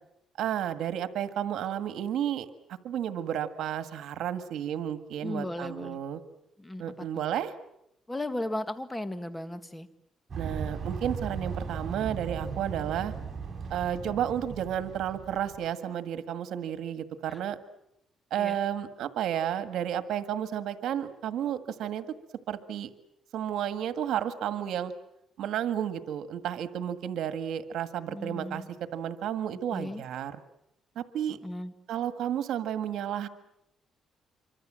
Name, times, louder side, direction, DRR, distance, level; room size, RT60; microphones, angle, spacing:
voice 1, 0.4-2.5 2.8-6.2 6.8-7.5 10.4-13.1 13.7-17.6 18.3-22.1 22.5-22.9 23.3-24.9 25.4-28.6 28.9-30.4 30.9-31.4 31.9-33.3, right 10 dB, 80° right, 10 dB, 1.7 m, -32 dB
voice 2, 5.2-6.0 6.6-6.8 8.1-9.9 17.3-17.4 18.4-18.6 28.1-28.7 29.7-30.0 31.4-31.7, left 1 dB, 15° left, 11 dB, 1.9 m, -35 dB
sound 1, 10.3-15.7, right 5 dB, 40° right, 7.5 m, -37 dB
26.5 x 24.5 x 7.6 m, 0.80 s
cardioid pair, 90°, 0 cm